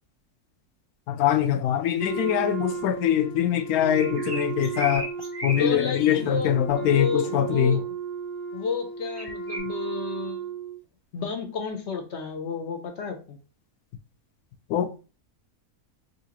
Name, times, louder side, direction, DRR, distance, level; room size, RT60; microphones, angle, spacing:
voice 1, 1.1-5.1 5.4-7.8 14.7-15.0, left 10 dB, 80° left, 1.1 m, -23 dB
Wind instrument woodwind instrument, 2.0-10.8, right 6 dB, 15° right, 0.8 m, -34 dB
sound 1, 3.9-5.6 5.9-6.1 6.7-6.8 9.2-9.6, right 1 dB, 35° right, 0.4 m, -35 dB
voice 2, 5.6-7.9 8.5-10.4 11.1-13.4, left 5 dB, 60° left, 0.8 m, -31 dB
3.8 x 2.8 x 2.9 m
omnidirectional pair, 1.5 m